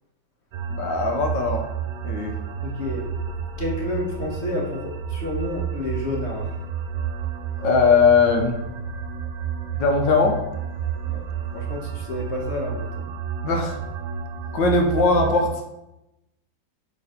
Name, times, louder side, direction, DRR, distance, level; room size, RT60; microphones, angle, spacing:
sound 1, 0.5-15.5, right 7 dB, 70° right, 0.8 m, -31 dB
voice 1, 0.7-1.7 2.0-2.3 7.6-8.6 9.7-10.4 13.4-13.8 14.5-15.6, left 4 dB, 75° left, 3 dB, 1.5 m, -20 dB
voice 2, 2.6-3.0 3.6-6.5 11.0-11.2 11.5-13.1, left 2 dB, 40° left, -1 dB, 1.3 m, -30 dB
6.8 x 3.8 x 5.0 m, 0.90 s
omnidirectional pair, 2.0 m